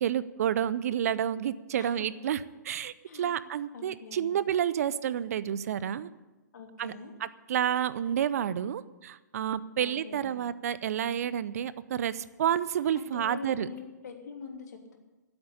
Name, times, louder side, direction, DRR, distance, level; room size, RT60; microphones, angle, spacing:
voice 1, 0.0-2.4 2.6-6.1 6.8-6.9 7.2-13.7, right 9 dB, 55° right, 17 dB, 0.6 m, -30 dB
voice 2, 3.1-3.4 3.7-4.3 6.5-7.1 9.8-10.4 12.9-15.0, left 6 dB, 65° left, 2 dB, 3.1 m, -44 dB
13.5 x 8.0 x 9.6 m, 1.1 s
figure-of-eight pair, 125°, 10 cm